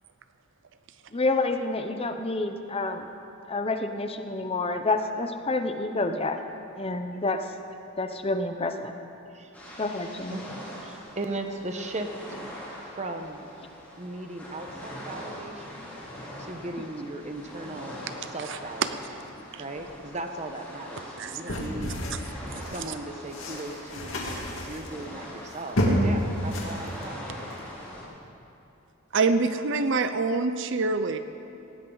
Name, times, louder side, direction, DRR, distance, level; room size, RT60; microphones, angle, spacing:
voice 1, 1.1-3.1 3.5-6.4 6.8-7.4 8.0-8.9 9.8-10.4, left 2 dB, 25° left, 7 dB, 0.7 m, -28 dB
sound 1, 9.5-28.0, equal, 10° left, 3.4 m, -43 dB
voice 2, 10.8-12.1 12.8-13.5 14.0-16.0 16.4-19.0 19.6-22.0 22.7-27.2, right 2 dB, 35° right, 5 dB, 1.1 m, -37 dB
voice 3, 21.2-21.6 29.1-31.2, right 3 dB, 60° right, 10 dB, 0.6 m, -26 dB
sound 2, 21.5-22.9 23.3-26.2 26.5-27.0 27.4-27.6, equal, 65° left, 2.7 m, -29 dB
19.0 x 16.5 x 4.0 m, 2.8 s
head